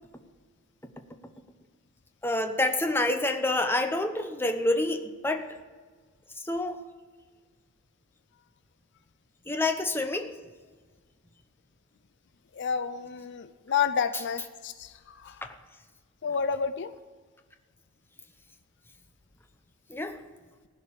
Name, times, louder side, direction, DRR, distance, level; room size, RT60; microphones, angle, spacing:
voice 1, 2.2-5.5 6.4-6.8 9.5-10.3 15.4-15.5 19.9-20.2, left 2 dB, 10° left, 6 dB, 0.9 m, -27 dB
voice 2, 12.5-15.5 16.2-16.9, left 6 dB, 55° left, 12 dB, 0.5 m, -30 dB
15.5 x 5.3 x 9.8 m, 1.4 s
head